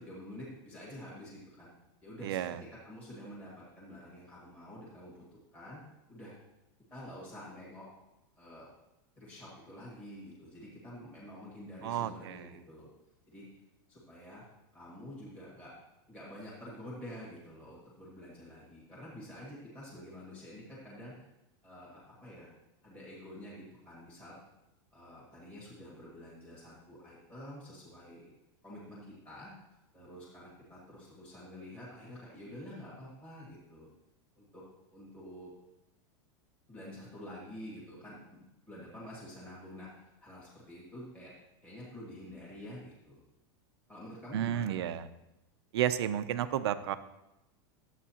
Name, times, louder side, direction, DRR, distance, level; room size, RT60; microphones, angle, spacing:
voice 1, 0.0-1.7 2.0-2.4 2.8-5.8 6.1-6.3 6.9-7.9 8.4-8.7 9.2-12.9 13.3-13.5 13.9-14.4 14.7-15.7 16.1-21.1 21.6-22.5 22.8-24.4 24.9-28.2 28.6-29.5 29.9-33.9 34.3-34.6 34.9-35.5 36.7-38.2 38.7-41.3 41.6-43.2 43.9-44.8, equal, 10° left, -8 dB, 1.8 m, -48 dB
voice 2, 2.2-2.6 11.8-12.5 44.3-45.1 45.7-47.0, right 11 dB, 85° right, 12 dB, 0.5 m, -32 dB
11.0 x 8.0 x 2.8 m, 0.94 s
supercardioid pair, 180°, 13 cm